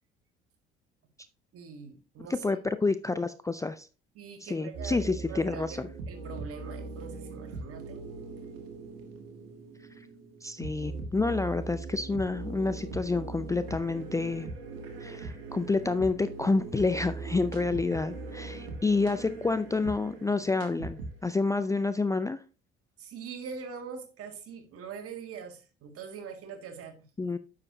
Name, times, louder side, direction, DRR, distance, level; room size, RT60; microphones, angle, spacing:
voice 1, 1.5-2.4 4.2-5.8 6.1-8.0 8.4-8.5 23.0-27.1, right 6 dB, 50° right, 5 dB, 2.0 m, -43 dB
voice 2, 2.3-3.9 4.4-5.9 10.4-14.5 15.0-22.4 27.2-27.4, left 3 dB, 10° left, 11 dB, 0.4 m, -29 dB
sound 1, 4.7-21.5, right 3 dB, 70° right, 1.6 m, -40 dB
9.6 x 6.5 x 2.8 m, 0.33 s
figure-of-eight pair, 55°, 30 cm